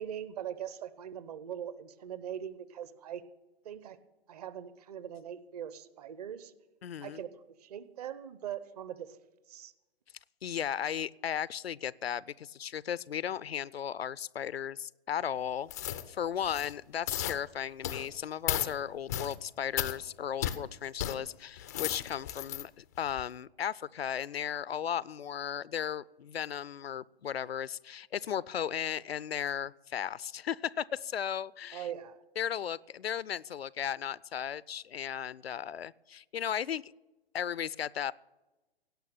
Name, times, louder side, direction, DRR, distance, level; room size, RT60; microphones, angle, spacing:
voice 1, 0.0-3.2 3.6-4.0 4.3-6.5 7.0-9.2 9.5-9.7 31.7-32.2, right 9 dB, 40° right, 15 dB, 0.9 m, -41 dB
voice 2, 6.8-7.2 10.4-31.9 32.4-36.9 37.3-38.1, left 9 dB, 75° left, 21 dB, 0.5 m, -36 dB
sound 1, 15.7-16.1 16.4-16.7 17.1-17.4 17.8-18.1 18.5-18.7 19.1-19.4 19.8-20.0 20.4-20.6 21.0-21.2 21.6-22.6 23.1-23.2, left 12 dB, 20° left, 0.4 m, -34 dB
17.0 x 5.9 x 8.9 m, 1.1 s
figure-of-eight pair, 125°, 31 cm